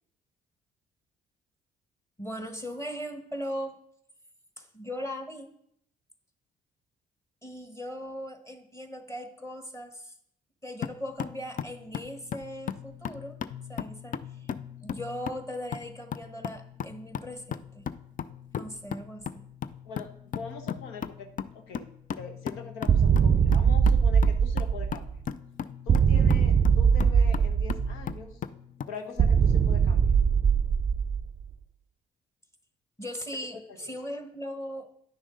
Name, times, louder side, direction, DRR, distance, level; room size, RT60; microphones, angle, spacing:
voice 1, 2.2-3.8 4.6-5.5 7.4-10.1 10.6-13.4 13.7-14.5 14.8-17.9 18.5-19.5 33.0-34.9, equal, 15° left, 5 dB, 1.5 m, -39 dB
sound 1, 10.8-29.0, left 8 dB, 45° left, 0.5 m, -38 dB
voice 2, 19.8-21.9 22.2-25.1 25.9-28.5 28.9-30.2 33.7-33.9, left 5 dB, 80° left, 5 dB, 1.2 m, -43 dB
sound 2, 22.9-25.2 25.9-28.2 29.2-31.5, right 7 dB, 35° right, 0.5 m, -22 dB
10.0 x 6.2 x 3.8 m, 0.70 s
hypercardioid pair, 55°, 19 cm